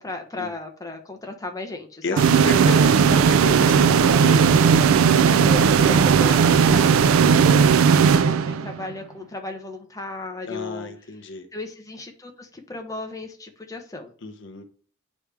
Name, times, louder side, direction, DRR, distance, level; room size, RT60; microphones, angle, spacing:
voice 1, 0.0-2.4 5.4-6.8 7.2-10.9 11.5-14.1, left 2 dB, 15° left, 0.9 m, -35 dB
voice 2, 2.0-4.8 5.6-6.1 10.5-11.5 14.2-14.6, left 1 dB, 60° left, 0.8 m, -32 dB
sound 1, 2.2-8.9, right 6 dB, 90° right, 0.4 m, -16 dB
9.5 x 3.2 x 3.4 m
head